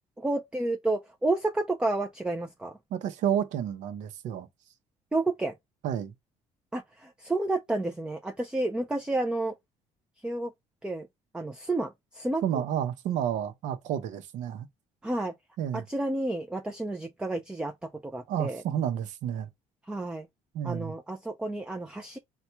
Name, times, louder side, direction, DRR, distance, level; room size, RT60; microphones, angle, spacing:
voice 1, 0.2-2.8 5.1-5.5 6.7-9.5 10.2-10.5 10.8-11.1 11.3-12.4 15.0-15.3 15.7-18.6 19.9-20.3 20.6-22.2, right 2 dB, 5° right, 0.4 m, -30 dB
voice 2, 2.9-4.5 5.8-6.1 12.4-14.7 15.6-15.9 18.3-19.5 20.5-20.9, right 9 dB, 75° right, 0.8 m, -30 dB
4.1 x 2.3 x 4.3 m
cardioid pair, 125°, 13 cm